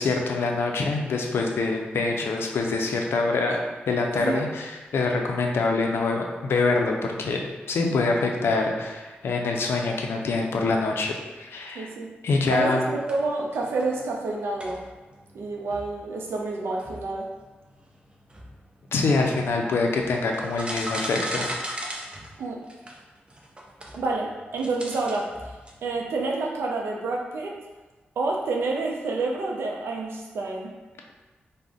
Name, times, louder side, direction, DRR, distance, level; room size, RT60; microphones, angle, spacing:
voice 1, 0.0-11.9 12.2-12.9 18.9-21.6, left 3 dB, 75° left, 1 dB, 0.4 m, -25 dB
voice 2, 11.7-12.1 12.5-14.8 15.3-17.3 22.4-22.6 23.9-25.3 25.8-27.6 28.2-30.7, right 3 dB, 80° right, 0 dB, 0.4 m, -28 dB
sound 1, 13.0-14.3 14.6-26.2, right 1 dB, 25° right, 0.5 m, -38 dB
2.5 x 2.1 x 3.5 m, 1.3 s
cardioid pair, 55°, 4 cm